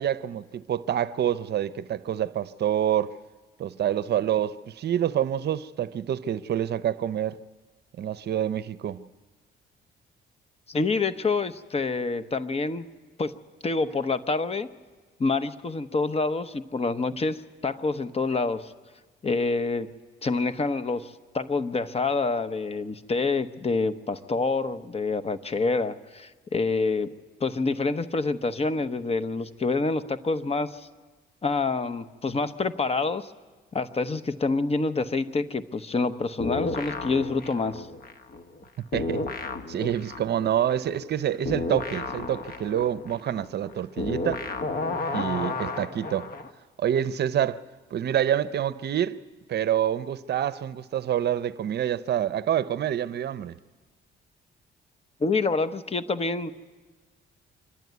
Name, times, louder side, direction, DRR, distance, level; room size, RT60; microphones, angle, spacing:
voice 1, 0.0-3.1 3.6-7.4 8.0-9.1 38.9-39.2 39.7-44.4 45.1-46.3 46.8-47.6 47.9-49.2 49.5-53.6, right 10 dB, 55° right, 0.7 m, -27 dB
voice 2, 10.7-12.9 13.2-13.3 13.6-14.7 15.2-18.7 19.2-19.9 20.2-27.1 27.4-30.9 31.4-33.3 33.7-37.9 55.2-56.5, left 3 dB, 30° left, 1.0 m, -27 dB
sound 1, 36.4-38.6 38.9-46.5, left 3 dB, 50° left, 1.4 m, -32 dB
26.0 x 12.0 x 9.4 m
cardioid pair, 90°, 20 cm